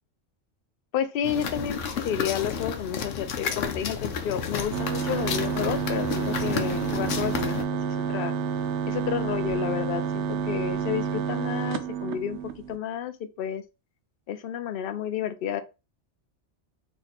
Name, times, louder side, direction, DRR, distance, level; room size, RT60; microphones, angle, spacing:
voice 1, 0.9-1.8 2.0-7.5 7.9-8.3 8.9-12.4 12.7-13.6 14.3-15.6, left 9 dB, 60° left, 0.6 m, -31 dB
sound 1, 1.2-7.6, left 6 dB, 85° left, 1.0 m, -32 dB
sound 2, 4.7-12.8, right 7 dB, 75° right, 0.9 m, -29 dB
3.0 x 2.9 x 4.1 m
omnidirectional pair, 1.2 m